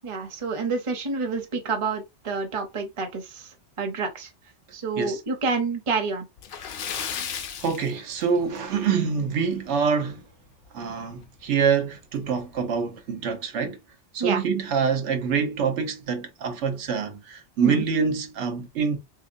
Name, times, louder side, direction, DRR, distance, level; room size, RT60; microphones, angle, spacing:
voice 1, 0.0-3.5 3.8-4.3 4.7-6.3 14.2-14.4 17.6-17.8, right 4 dB, 30° right, 0.7 m, -28 dB
Splash splatter, 6.4-8.7 9.1-9.2 9.7-9.8 11.2-11.3 11.6-11.7 12.4-12.6, left 7 dB, 60° left, 0.7 m, -34 dB
voice 2, 7.6-10.2 10.7-13.8 14.1-19.0, right 6 dB, 75° right, 1.0 m, -26 dB
3.5 x 2.8 x 2.5 m
omnidirectional pair, 1.2 m